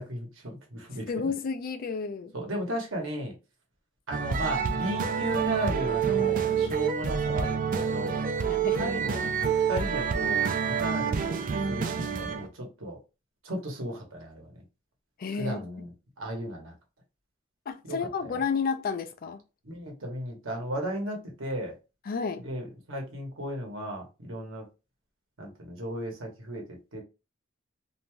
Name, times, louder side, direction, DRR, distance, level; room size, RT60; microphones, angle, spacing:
voice 1, 0.0-1.3 2.3-3.3 4.1-8.2 8.8-13.0 13.4-14.6 15.4-15.9 16.2-16.7 17.8-17.9 19.6-21.8 22.4-24.7 25.4-26.6 26.9-27.0, right 1 dB, 90° right, 1.1 m, -35 dB
voice 2, 1.1-2.3 8.5-8.9 15.2-15.6 17.7-19.4 22.1-22.4, left 5 dB, 45° left, 0.4 m, -31 dB
sound 1, 4.1-12.5, right 6 dB, 45° right, 0.3 m, -28 dB
2.6 x 2.2 x 3.0 m
head